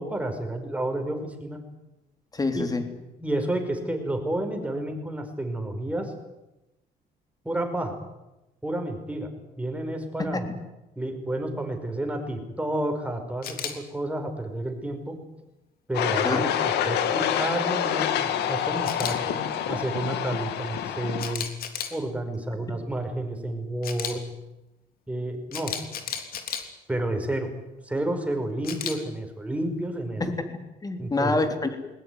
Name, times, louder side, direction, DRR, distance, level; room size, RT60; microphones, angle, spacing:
voice 1, 0.0-1.6 2.5-2.6 3.2-6.1 7.4-8.0 8.6-9.3 9.6-10.5 11.0-15.2 15.9-19.4 19.7-21.5 21.9-24.2 25.1-25.7 26.0-26.2 26.9-27.5 27.8-30.2 31.0-31.4, right 1 dB, 10° right, 5 dB, 5.2 m, -30 dB
voice 2, 2.3-2.8 10.3-10.5 16.2-16.5 30.2-31.9, left 3 dB, 20° left, 7 dB, 3.5 m, -27 dB
Camera, 13.4-13.7 18.8-19.1 21.2-21.9 23.8-24.1 25.5-26.6 28.6-28.9, left 8 dB, 60° left, 3.3 m, -32 dB
sound 1, 15.9-21.3, left 9 dB, 80° left, 2.3 m, -27 dB
20.5 x 20.0 x 9.6 m, 0.99 s
cardioid pair, 110°, 17 cm